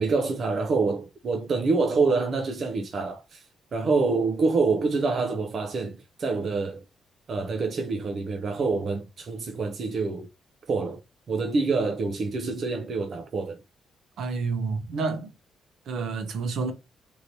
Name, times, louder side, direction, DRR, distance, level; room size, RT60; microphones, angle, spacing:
voice 1, 0.0-3.4 3.7-6.8 7.3-10.3 10.7-11.0 11.3-13.6, right 4 dB, 40° right, 0.4 m, -26 dB
voice 2, 14.2-15.3 15.9-16.7, right 4 dB, 65° right, 0.8 m, -29 dB
3.1 x 2.8 x 2.6 m
cardioid pair, 150°, 0 cm